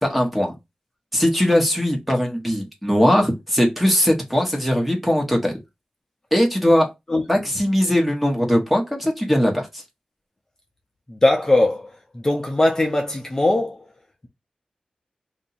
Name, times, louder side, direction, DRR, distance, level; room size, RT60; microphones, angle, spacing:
voice 1, 0.0-0.5 1.1-5.6 6.3-6.9 7.3-9.7, equal, 5° right, 1.1 m, -20 dB
voice 2, 11.1-13.9, left 2 dB, 25° left, 0.7 m, -20 dB
2.9 x 2.6 x 4.2 m
wide cardioid pair, 110°, 2 cm